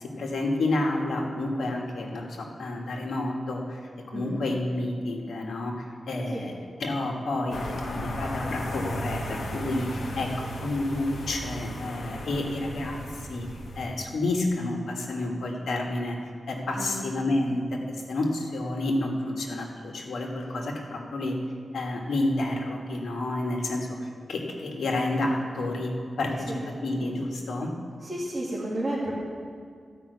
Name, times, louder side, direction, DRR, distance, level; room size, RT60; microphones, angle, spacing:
voice 1, 0.0-13.5 13.7-21.4 21.7-25.9 26.2-27.7, left 2 dB, 90° left, 0 dB, 1.5 m, -30 dB
voice 2, 4.1-4.4 6.3-6.4 16.8-17.1 26.5-26.6 28.0-29.2, right 1 dB, 20° right, -8 dB, 2.4 m, -32 dB
sound 1, 7.5-13.8, equal, 70° left, 1.5 m, -35 dB
14.5 x 5.7 x 8.0 m, 2.2 s
wide cardioid pair, 135°, 0 cm